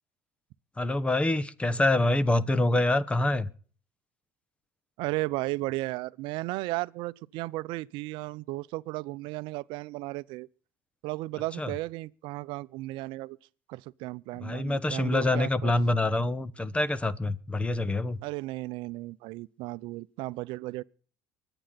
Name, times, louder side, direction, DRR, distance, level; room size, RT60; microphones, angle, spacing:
voice 1, 0.8-3.5 11.6-11.7 14.4-18.2, left 2 dB, 15° left, 1.1 m, -26 dB
voice 2, 5.0-10.5 11.0-13.4 13.7-15.7 18.2-20.8, right 20 dB, 70° right, 0.6 m, -35 dB
24.0 x 9.0 x 4.1 m
supercardioid pair, 95°, 9 cm